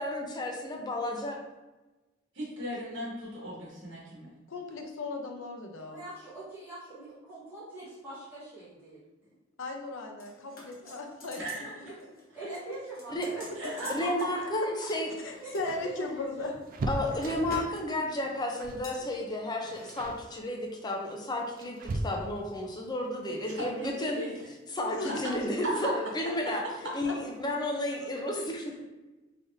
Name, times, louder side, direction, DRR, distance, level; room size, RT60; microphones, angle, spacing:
voice 1, 0.0-1.4 13.1-13.3 13.9-15.2 16.9-21.8 22.0-24.2 24.7-26.6 26.9-28.8, left 1 dB, 20° left, 1 dB, 0.6 m, -32 dB
voice 2, 2.3-4.4 11.3-11.7 13.5-14.0 23.5-24.4 25.1-25.3 25.6-25.9, equal, 65° right, -5 dB, 1.3 m, -37 dB
voice 3, 4.5-6.0 9.6-11.7 12.4-12.7 15.2-16.5 19.0-19.1 25.0-25.2 27.0-27.1, left 3 dB, 80° left, 2 dB, 0.6 m, -37 dB
voice 4, 5.9-9.0 10.8-10.9 11.6-11.9 12.3-13.9 14.4-14.5 15.2-16.5 25.4-25.8, right 2 dB, 10° right, -13 dB, 1.3 m, -43 dB
sound 1, 10.2-11.7 12.0-12.2 12.5-14.3 14.9-15.8 16.4-17.8 18.1-18.3 18.8-19.0 19.6-19.9 20.1-20.2, left 2 dB, 50° left, 1.1 m, -47 dB
sound 2, 15.1-17.8 18.6-18.9 19.2-19.5 19.9-20.3 21.1-22.6 24.3-24.4 24.8-24.9 26.1-26.5 26.8-26.9 27.2-27.4, right 2 dB, 45° right, 0.3 m, -37 dB
3.9 x 3.4 x 2.6 m, 1.1 s
head